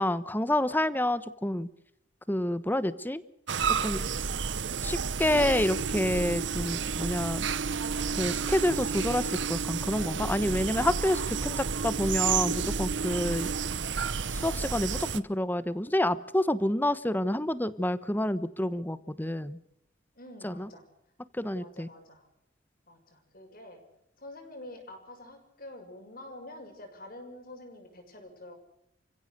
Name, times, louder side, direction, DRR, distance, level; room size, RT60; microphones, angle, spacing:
voice 1, 0.0-1.7 2.3-3.2 3.7-4.0 4.8-7.5 8.2-13.5 14.3-19.6 20.4-20.7 21.3-21.9, left 1 dB, 10° left, 15 dB, 1.1 m, -28 dB
sound 1, 3.5-15.2, right 6 dB, 75° right, 1.0 m, -31 dB
voice 2, 20.1-20.8 21.6-22.3 22.9-23.8 24.2-28.5, left 1 dB, 50° left, 5 dB, 6.6 m, -47 dB
30.0 x 16.0 x 6.7 m, 0.78 s
head